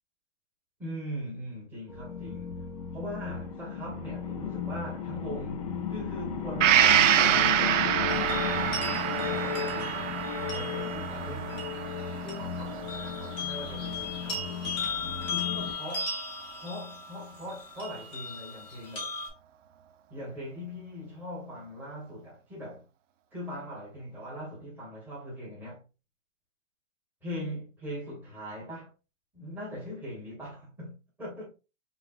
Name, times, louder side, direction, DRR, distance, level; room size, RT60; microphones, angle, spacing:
voice 1, 0.8-10.2 10.5-11.9 12.2-16.1 16.5-19.1 20.1-22.9 23.3-25.8 27.2-28.9 29.3-31.5, equal, 5° right, 1.5 m, -41 dB
sound 1, 1.9-15.7, left 7 dB, 30° left, 0.4 m, -35 dB
Gong, 6.6-14.2 14.6-14.7, right 10 dB, 75° right, 0.5 m, -27 dB
sound 2, 8.1-19.3, left 3 dB, 15° left, 0.9 m, -38 dB
5.4 x 2.5 x 2.4 m
hypercardioid pair, 160°, 38 cm